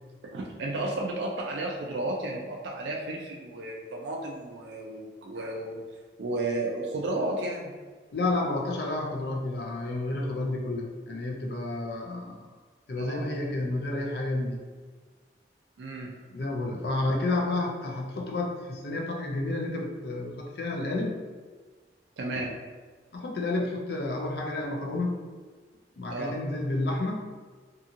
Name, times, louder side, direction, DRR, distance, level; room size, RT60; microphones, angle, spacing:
voice 1, 0.2-5.8 6.2-7.8 13.0-13.3 15.8-16.2 22.2-22.6 26.1-26.4, right 2 dB, 80° right, -1 dB, 0.4 m, -33 dB
voice 2, 8.1-12.5 12.9-14.6 16.3-21.2 23.1-25.3 26.0-27.3, left 2 dB, 65° left, 0 dB, 0.4 m, -30 dB
2.7 x 2.6 x 2.5 m, 1.4 s
head